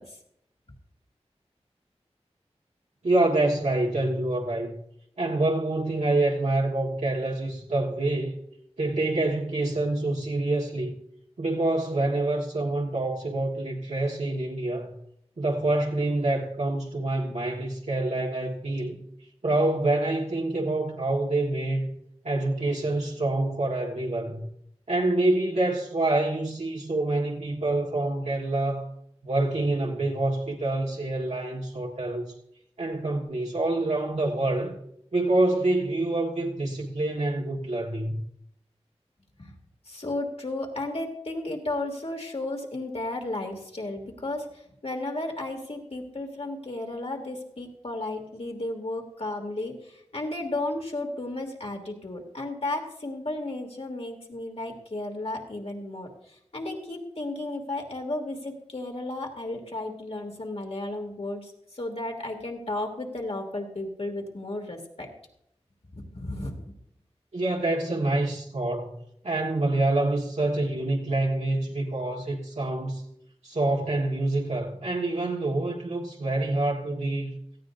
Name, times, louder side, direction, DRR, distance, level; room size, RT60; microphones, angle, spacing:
voice 1, 3.0-4.7 5.2-8.4 8.8-11.0 11.4-14.9 15.4-19.0 19.4-21.9 22.2-24.4 24.9-28.8 29.2-32.3 32.8-34.7 35.1-38.2 67.3-68.9 69.2-73.0 73.4-77.3, right 2 dB, 80° right, 1.7 m, -26 dB
voice 2, 39.9-44.5 44.8-65.1 65.9-66.7, left 2 dB, 60° left, 2.7 m, -34 dB
17.5 x 14.5 x 2.7 m
wide cardioid pair, 60°, 11 cm